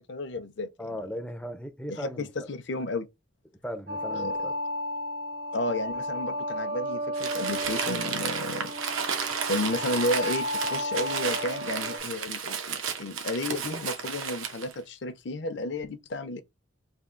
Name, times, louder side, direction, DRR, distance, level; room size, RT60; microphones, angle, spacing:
voice 1, 0.1-0.7 1.9-3.1 4.1-4.3 5.5-8.7 9.5-16.4, left 2 dB, 55° left, 0.6 m, -32 dB
voice 2, 0.8-2.5 3.6-4.6, equal, 5° left, 0.4 m, -37 dB
sound 1, 3.9-12.0, left 1 dB, 50° right, 0.6 m, -33 dB
Crumpling crinkling, 7.1-14.7, right 6 dB, 80° right, 0.8 m, -33 dB
3.5 x 2.3 x 3.7 m
head